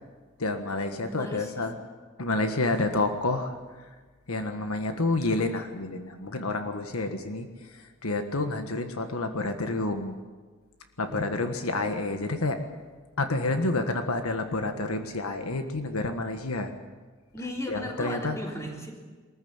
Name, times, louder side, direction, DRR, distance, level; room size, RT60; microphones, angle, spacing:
voice 1, 0.4-1.7 2.2-3.5 4.3-7.5 8.0-10.2 11.0-12.6 13.2-16.7 17.7-18.4, left 2 dB, 85° left, 7 dB, 1.6 m, -29 dB
voice 2, 1.0-1.8 11.0-11.8 17.3-18.9, equal, 15° left, -1 dB, 3.8 m, -38 dB
23.5 x 14.5 x 9.0 m, 1.4 s
head